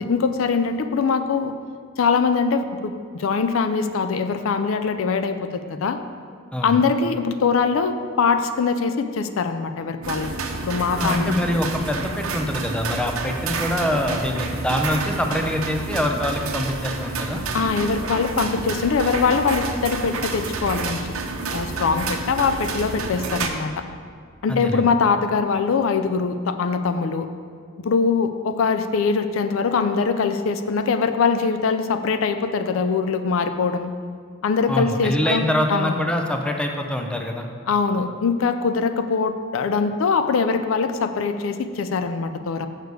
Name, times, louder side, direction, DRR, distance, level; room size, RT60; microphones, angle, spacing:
voice 1, 0.0-1.5 2.0-6.0 6.6-10.3 10.6-11.3 17.5-21.1 21.5-23.8 24.4-27.3 27.8-33.9 34.4-36.0 37.7-42.7, left 5 dB, 70° left, 9 dB, 0.4 m, -22 dB
voice 2, 6.5-6.8 11.0-17.4 24.5-24.9 34.7-37.5, equal, 5° left, 3 dB, 0.5 m, -24 dB
sound 1, 10.0-23.5, right 3 dB, 90° right, 0.7 m, -29 dB
6.7 x 6.6 x 4.7 m, 2.1 s
head